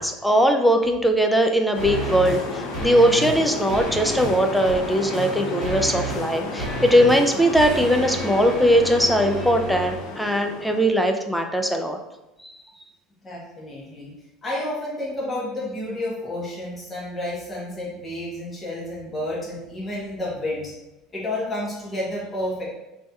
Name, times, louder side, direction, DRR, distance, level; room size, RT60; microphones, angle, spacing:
voice 1, 0.0-12.0, equal, ahead, 4 dB, 0.3 m, -20 dB
sound 1, 1.7-10.9, left 4 dB, 65° left, 0.5 m, -32 dB
sound 2, 1.8-2.5 2.7-3.4 3.7-10.0, right 3 dB, 20° right, 1.1 m, -33 dB
voice 2, 13.2-14.1 14.4-20.7 21.1-22.6, left 1 dB, 15° left, -6 dB, 1.0 m, -30 dB
4.3 x 2.8 x 2.3 m, 1.0 s
cardioid pair, 140°, 0 cm